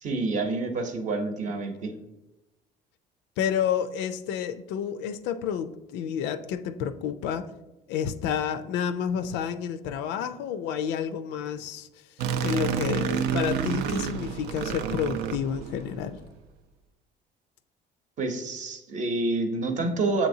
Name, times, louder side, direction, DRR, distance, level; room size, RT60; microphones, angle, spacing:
voice 1, 0.0-1.9 18.2-20.3, right 3 dB, 45° right, 0.8 m, -28 dB
voice 2, 3.4-7.5 7.9-11.9 12.4-16.2, left 8 dB, 85° left, 0.4 m, -30 dB
sound 1, 12.2-16.1, right 7 dB, 75° right, 0.4 m, -29 dB
7.0 x 2.9 x 2.7 m
cardioid pair, 100°, 17 cm